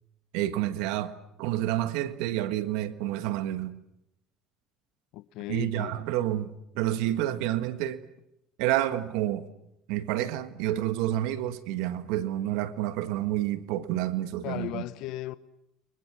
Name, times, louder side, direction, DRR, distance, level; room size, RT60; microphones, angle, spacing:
voice 1, 0.3-1.1 1.4-3.8 5.5-8.0 8.6-9.5 9.9-14.8, right 13 dB, 80° right, 1.6 m, -29 dB
voice 2, 5.1-6.0 14.4-15.3, left 16 dB, 70° left, 1.1 m, -36 dB
30.0 x 24.5 x 6.3 m
supercardioid pair, 100°, 0 cm